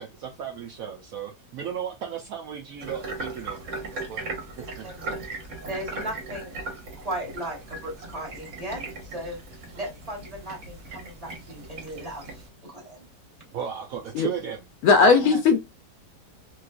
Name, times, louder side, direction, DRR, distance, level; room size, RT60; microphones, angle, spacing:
voice 1, 0.0-4.3 4.6-4.9 13.5-15.4, right 8 dB, 70° right, 0.9 m, -36 dB
sound 1, 2.8-12.5, right 3 dB, 50° right, 1.2 m, -38 dB
voice 2, 4.6-5.2 5.7-9.4 9.7-13.0, right 1 dB, 25° right, 1.2 m, -37 dB
voice 3, 14.8-15.6, left 4 dB, 70° left, 0.9 m, -17 dB
3.1 x 2.9 x 2.3 m
omnidirectional pair, 1.8 m